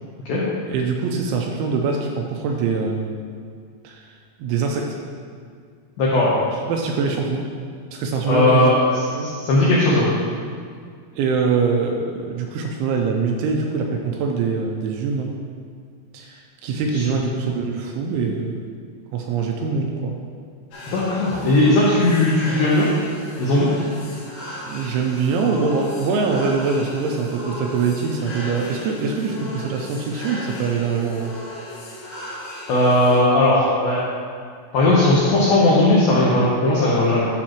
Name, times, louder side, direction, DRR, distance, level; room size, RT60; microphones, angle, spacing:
voice 1, 0.7-3.1 3.8-4.1 4.4-5.0 6.7-7.4 7.9-9.3 11.2-15.3 16.1-18.7 19.1-20.2 24.7-31.4, right 4 dB, 85° right, 1 dB, 2.8 m, -23 dB
voice 2, 6.0-6.3 8.3-8.8 9.2-10.1 16.9-17.3 20.9-22.9 23.4-23.7 32.7-34.0 34.7-37.2, left 2 dB, 80° left, -7 dB, 2.0 m, -17 dB
sound 1, 20.7-33.2, left 1 dB, 55° left, 3.1 m, -36 dB
11.5 x 6.6 x 3.0 m, 2.1 s
omnidirectional pair, 5.8 m